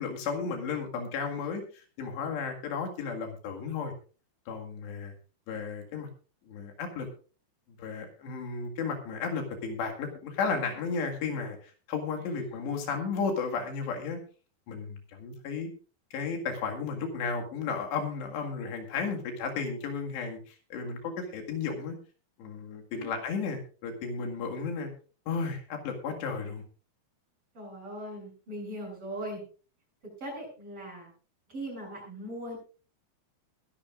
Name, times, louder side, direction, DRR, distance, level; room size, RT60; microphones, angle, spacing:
voice 1, 0.0-3.9 4.5-5.1 5.5-6.1 6.5-7.1 7.8-14.2 14.7-15.7 16.1-22.0 22.4-24.9 25.3-26.6, left 5 dB, 80° left, 2 dB, 4.2 m, -34 dB
voice 2, 27.5-29.4 30.0-31.1 31.5-32.6, right 1 dB, 35° right, -2 dB, 8.6 m, -40 dB
22.0 x 11.5 x 2.5 m, 0.36 s
omnidirectional pair, 4.9 m